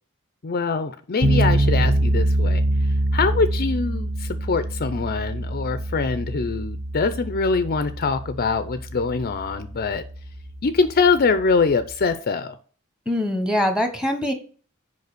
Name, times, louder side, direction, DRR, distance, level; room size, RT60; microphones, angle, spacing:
voice 1, 0.4-2.6 3.1-10.0 10.6-12.6, left 4 dB, 45° left, 11 dB, 0.5 m, -23 dB
sound 1, 1.2-12.1, right 1 dB, 35° right, 1.3 m, -25 dB
voice 2, 13.1-14.3, left 1 dB, 5° right, 6 dB, 1.2 m, -23 dB
6.7 x 5.2 x 6.7 m, 0.43 s
head